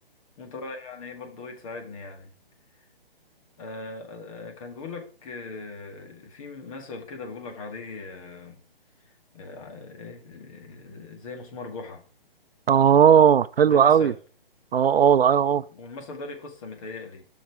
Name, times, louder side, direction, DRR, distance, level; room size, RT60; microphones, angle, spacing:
voice 1, 0.4-2.3 3.6-8.6 9.0-12.0 13.7-14.2 15.5-17.2, left 3 dB, 35° left, 1.9 m, -39 dB
voice 2, 12.7-14.1 14.7-15.6, right 8 dB, 80° right, 0.5 m, -17 dB
10.0 x 6.0 x 4.8 m
hypercardioid pair, 150°, 30 cm